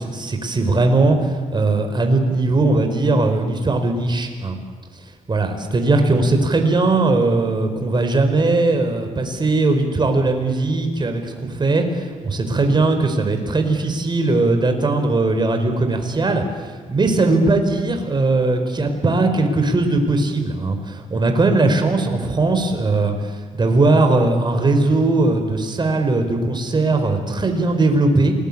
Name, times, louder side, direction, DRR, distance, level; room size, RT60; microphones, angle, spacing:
voice 1, 0.0-4.6 5.3-28.3, right 2 dB, 35° right, 5 dB, 4.8 m, -19 dB
27.5 x 20.5 x 8.8 m, 1.5 s
cardioid pair, 75°, 14 cm